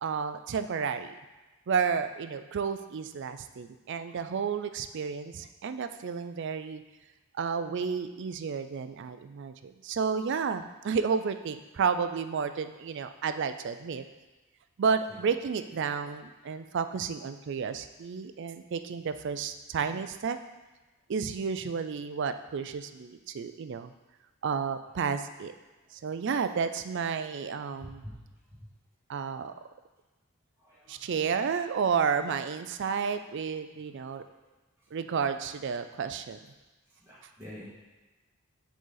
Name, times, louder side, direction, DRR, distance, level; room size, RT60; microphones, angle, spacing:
voice 1, 0.0-1.1 1.7-6.8 7.4-14.0 14.8-20.4 21.1-23.9 24.4-25.5 26.0-28.0 29.1-29.5 30.9-34.2 34.9-36.4, right 6 dB, 55° right, 10 dB, 0.4 m, -31 dB
voice 2, 27.9-28.3 30.6-31.2 33.8-33.9 34.2-34.3 34.8-34.9 36.9-37.7, equal, 10° right, -9 dB, 1.9 m, -48 dB
7.6 x 4.0 x 3.9 m, 1.2 s
head